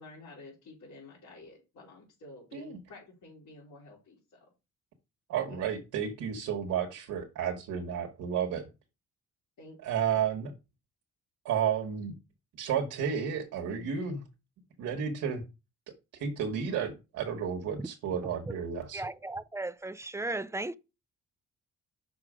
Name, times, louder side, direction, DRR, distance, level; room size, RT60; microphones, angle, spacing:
voice 1, 0.0-4.5 5.5-5.7 9.6-10.3, left 2 dB, 70° left, 3.7 m, -51 dB
voice 2, 5.3-8.7 9.8-10.5 11.4-12.1 12.6-14.2 14.8-15.4 16.2-19.0, right 8 dB, 85° right, 1.3 m, -32 dB
voice 3, 18.9-20.7, right 2 dB, 10° right, 0.4 m, -35 dB
6.0 x 4.8 x 4.9 m
cardioid pair, 90°, 30 cm